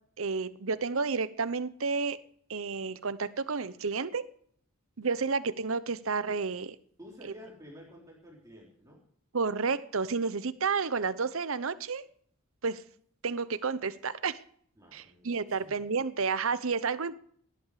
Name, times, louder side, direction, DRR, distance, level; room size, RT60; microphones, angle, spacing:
voice 1, 0.2-2.2 2.5-4.3 5.0-6.8 9.3-12.1 12.6-12.8 13.2-14.4 14.9-17.2, right 4 dB, 70° right, 15 dB, 0.8 m, -31 dB
voice 2, 7.0-9.0 14.8-15.8, equal, 15° right, -3 dB, 3.5 m, -51 dB
18.0 x 11.0 x 4.9 m, 0.62 s
head